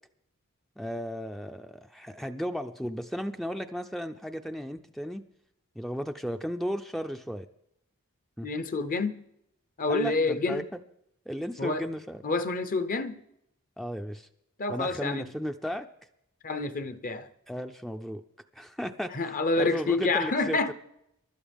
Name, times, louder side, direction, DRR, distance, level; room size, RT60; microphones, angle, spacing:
voice 1, 0.8-5.2 5.8-7.5 8.4-8.5 9.9-10.6 11.3-12.2 13.8-14.3 14.7-15.9 17.5-18.2 18.5-20.7, equal, ahead, 0.4 m, -35 dB
voice 2, 8.4-9.2 9.8-10.7 11.6-11.9 12.2-13.2 14.6-15.3 16.4-17.3 19.1-20.7, left 3 dB, 40° left, 0.7 m, -28 dB
23.0 x 12.0 x 3.5 m
head